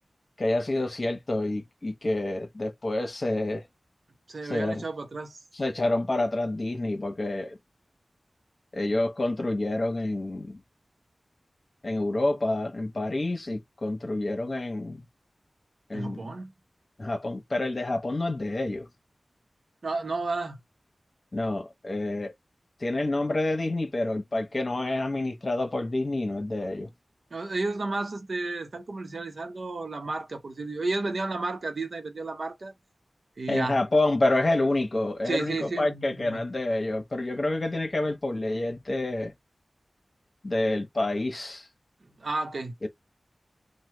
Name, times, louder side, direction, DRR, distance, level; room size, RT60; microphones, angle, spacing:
voice 1, 0.4-3.6 4.5-4.8 5.5-7.6 8.7-10.6 11.8-15.1 15.9-16.2 17.0-18.9 21.3-22.3 22.8-26.9 33.5-39.3 40.4-41.7 42.8-42.9, left 2 dB, 45° left, 0.9 m, -28 dB
voice 2, 4.3-5.4 15.9-16.5 19.8-20.6 27.3-32.7 33.4-33.8 35.2-36.4 42.0-42.7, right 3 dB, 70° right, 0.8 m, -32 dB
3.1 x 2.2 x 3.3 m
wide cardioid pair, 75°, 0 cm